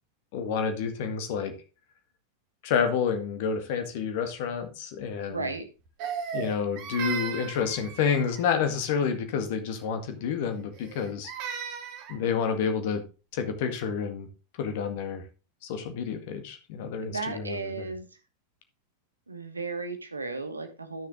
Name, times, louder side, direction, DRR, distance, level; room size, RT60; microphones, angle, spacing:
voice 1, 0.3-1.5 2.6-5.5 6.3-11.3 12.1-13.0 13.3-14.3 14.6-15.2 15.6-17.9, left 6 dB, 50° left, 7 dB, 1.7 m, -29 dB
voice 2, 5.2-5.7 17.1-18.1 19.3-21.1, right 3 dB, 80° right, 9 dB, 1.4 m, -34 dB
Crying sobbing, 6.0-8.5 10.7-12.2, right 7 dB, 45° right, 1.8 m, -36 dB
10.5 x 6.7 x 3.8 m, 0.32 s
figure-of-eight pair, 90°, 0 cm